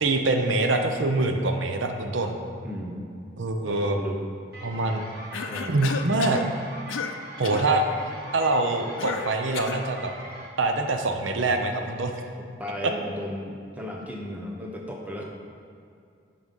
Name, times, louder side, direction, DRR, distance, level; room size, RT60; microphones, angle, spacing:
voice 1, 0.0-2.4 3.4-4.0 4.6-5.0 5.7-6.4 7.4-7.8 8.3-10.1 10.6-12.3, right 2 dB, 75° right, 5 dB, 0.7 m, -24 dB
voice 2, 2.6-3.1 3.6-4.2 5.4-6.0 12.4-15.2, left 1 dB, 10° right, -1 dB, 0.8 m, -35 dB
sound 1, 4.5-10.5, right 1 dB, 50° right, 1.4 m, -42 dB
Cough, 5.3-6.5 6.9-7.2 7.4-7.7 9.0-9.9, left 5 dB, 85° left, 0.5 m, -32 dB
11.0 x 3.9 x 5.4 m, 2.4 s
head